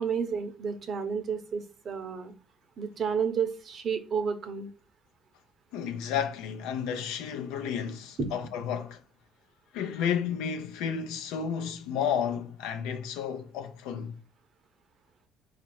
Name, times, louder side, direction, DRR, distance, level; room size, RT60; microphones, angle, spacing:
voice 1, 0.0-2.3 2.8-4.7 8.2-8.3, right 6 dB, 45° right, 0.7 m, -31 dB
voice 2, 5.7-9.0 9.7-14.2, left 8 dB, 85° left, 0.6 m, -32 dB
4.1 x 2.5 x 4.5 m
cardioid pair, 120°, 0 cm